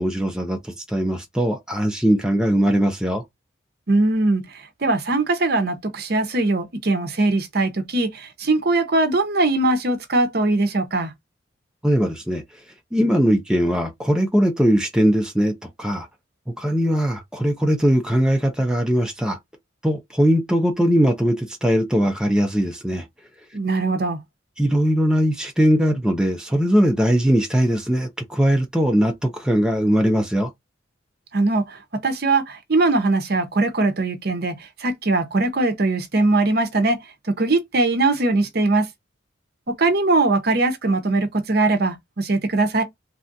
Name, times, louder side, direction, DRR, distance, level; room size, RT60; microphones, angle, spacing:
voice 1, 0.0-3.2 11.8-12.4 12.9-16.1 16.6-19.4 19.8-23.1 24.6-30.5, equal, 5° right, 0.5 m, -20 dB
voice 2, 3.9-11.1 23.5-24.2 31.3-38.9 39.7-42.8, right 2 dB, 50° right, 0.7 m, -21 dB
3.3 x 2.4 x 2.6 m
head